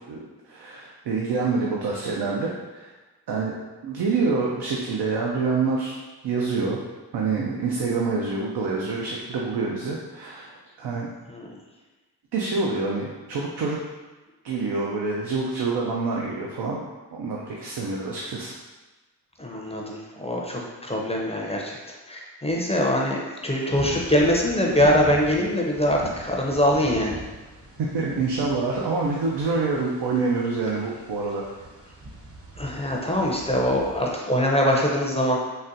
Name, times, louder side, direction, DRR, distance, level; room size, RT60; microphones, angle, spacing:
voice 1, 0.1-2.9 3.3-3.5 3.8-6.0 6.2-6.8 7.1-11.1 12.3-13.8 14.4-16.8 17.1-18.5 27.8-31.4, right 4 dB, 70° right, -3 dB, 0.5 m, -26 dB
voice 2, 19.4-27.2 32.6-35.4, equal, 15° left, -2 dB, 0.5 m, -23 dB
sound 1, 23.7-34.1, right 1 dB, 35° right, 0.7 m, -41 dB
4.0 x 2.1 x 2.5 m, 1.2 s
cardioid pair, 45°, 41 cm